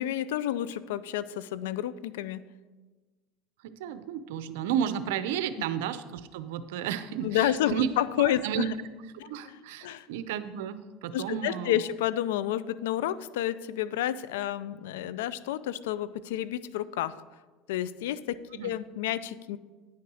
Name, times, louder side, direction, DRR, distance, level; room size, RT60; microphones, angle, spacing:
voice 1, 0.0-2.4 7.2-8.7 9.2-10.1 11.1-17.1 17.7-19.6, left 12 dB, 90° left, 17 dB, 0.4 m, -30 dB
voice 2, 3.6-7.9 8.4-8.7 9.2-11.8 18.5-18.7, right 9 dB, 85° right, 12 dB, 0.6 m, -32 dB
9.7 x 5.8 x 6.2 m, 1.3 s
supercardioid pair, 105°, 0 cm